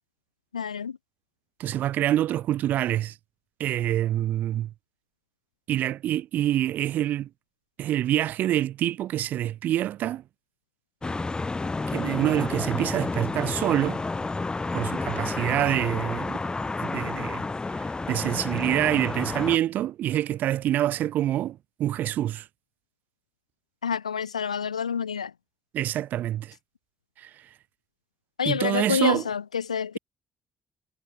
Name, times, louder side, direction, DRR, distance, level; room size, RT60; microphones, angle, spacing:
voice 1, 0.5-1.0 23.8-25.3 28.4-30.0, left 7 dB, 85° left, 1.1 m, -28 dB
voice 2, 1.6-3.2 3.6-4.7 5.7-7.3 7.8-10.2 11.9-14.0 14.7-16.4 16.8-17.4 17.8-22.5 25.7-26.5 27.2-27.3 28.4-29.2, right 12 dB, 60° right, 1.4 m, -26 dB
sound 1, 11.0-19.6, left 3 dB, 25° left, 3.9 m, -30 dB
figure-of-eight pair, 40°, 3 cm